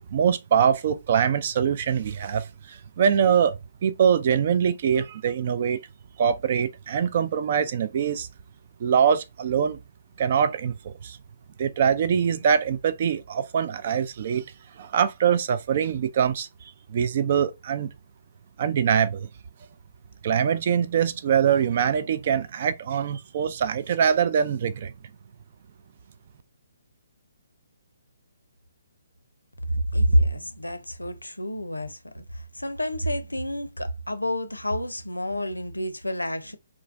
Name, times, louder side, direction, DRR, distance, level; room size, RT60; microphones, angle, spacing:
voice 1, 0.1-5.8 6.2-8.3 8.8-9.8 10.2-11.2 11.6-14.4 14.8-17.9 18.6-19.3 20.2-24.9, right 7 dB, 40° right, 0.3 m, -23 dB
voice 2, 29.7-36.6, equal, 80° left, 0.5 m, -28 dB
3.8 x 2.3 x 2.3 m
figure-of-eight pair, 135°, 0 cm